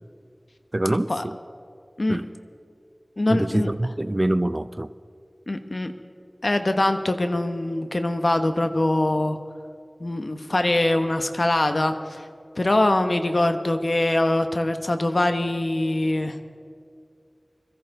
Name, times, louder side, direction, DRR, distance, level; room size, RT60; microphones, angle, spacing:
voice 1, 0.7-1.4 2.1-2.3 3.3-4.9, right 1 dB, 35° right, 14 dB, 0.4 m, -25 dB
voice 2, 3.2-3.7 5.5-5.9 6.4-9.4 10.0-12.3 12.6-16.4, left 1 dB, 65° left, 7 dB, 1.0 m, -23 dB
21.5 x 14.0 x 3.8 m, 2.3 s
wide cardioid pair, 50°, 0 cm